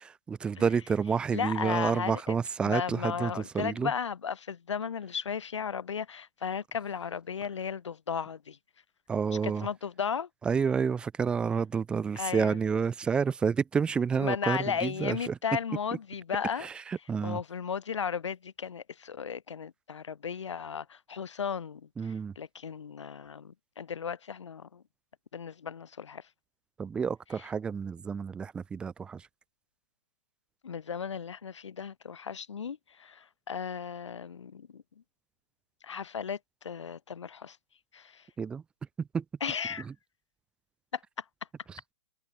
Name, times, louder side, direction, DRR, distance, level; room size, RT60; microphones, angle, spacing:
voice 1, 0.0-3.9 9.1-9.7 10.5-15.3 16.6-16.7 17.1-17.4 22.0-22.3 26.8-29.2 38.4-38.6 39.1-39.2, right 6 dB, 5° right, 1.8 m, -29 dB
voice 2, 1.3-2.4 2.6-8.6 9.4-10.3 12.2-12.6 14.1-16.7 17.2-24.8 25.3-26.2 27.3-27.5 30.6-34.8 35.8-37.6 37.9-38.3 39.4-39.9 40.9-41.2, left 7 dB, 75° left, 2.4 m, -35 dB
hypercardioid pair, 175°, 15 cm